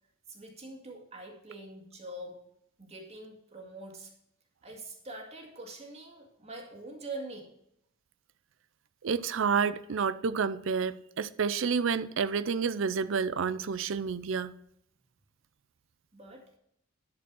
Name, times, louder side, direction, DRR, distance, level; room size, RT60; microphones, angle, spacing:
voice 1, 0.3-2.4 2.8-4.1 4.6-7.5 16.1-16.6, right 2 dB, 30° right, 2.1 m, -44 dB
voice 2, 9.0-14.5, right 6 dB, 70° right, 0.5 m, -29 dB
11.5 x 5.2 x 6.1 m
head